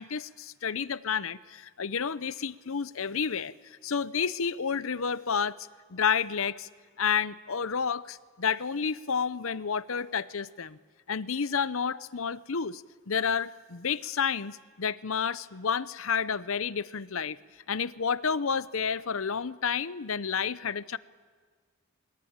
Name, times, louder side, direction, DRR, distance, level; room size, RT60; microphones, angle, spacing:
voice 1, 0.0-3.5 3.8-5.6 5.9-6.7 7.0-10.8 11.1-17.4 17.7-21.0, left 6 dB, 65° left, 17 dB, 0.7 m, -30 dB
28.0 x 21.5 x 8.9 m, 1.5 s
head